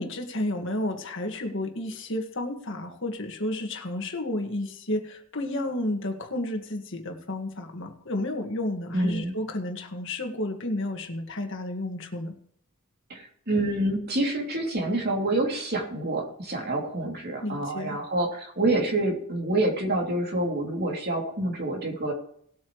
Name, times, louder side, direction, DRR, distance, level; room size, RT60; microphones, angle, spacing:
voice 1, 0.0-12.3 17.4-18.0, left 1 dB, 55° left, 3 dB, 1.8 m, -31 dB
voice 2, 8.9-9.3 13.1-22.1, right 2 dB, 45° right, 1 dB, 2.9 m, -27 dB
19.0 x 8.6 x 3.2 m, 0.65 s
head